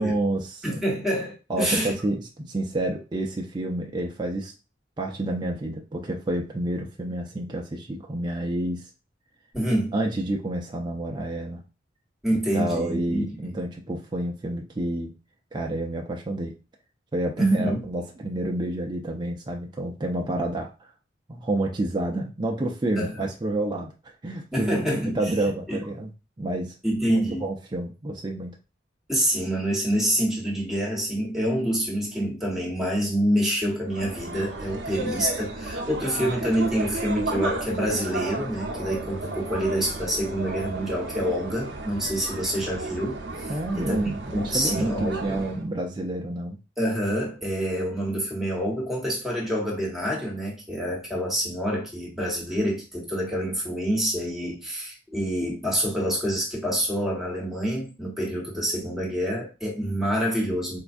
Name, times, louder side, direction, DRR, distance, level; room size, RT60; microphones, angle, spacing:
voice 1, 0.0-0.6 1.5-4.5 5.0-8.9 9.9-11.6 12.3-15.1 15.5-16.5 17.1-20.9 21.3-23.9 24.2-26.1 26.4-26.8 27.1-28.5 34.9-35.0 36.2-36.3 43.5-46.6, right 1 dB, 25° right, 0.4 m, -29 dB
voice 2, 0.6-2.0 9.5-9.9 12.2-13.5 17.4-17.8 23.0-23.3 24.5-25.2 25.7-25.8 26.8-27.5 29.1-43.5 43.8-45.4 46.8-60.8, equal, ahead, 1.1 m, -27 dB
sound 1, 33.9-45.6, right 2 dB, 65° right, 0.7 m, -33 dB
4.4 x 2.3 x 2.5 m
head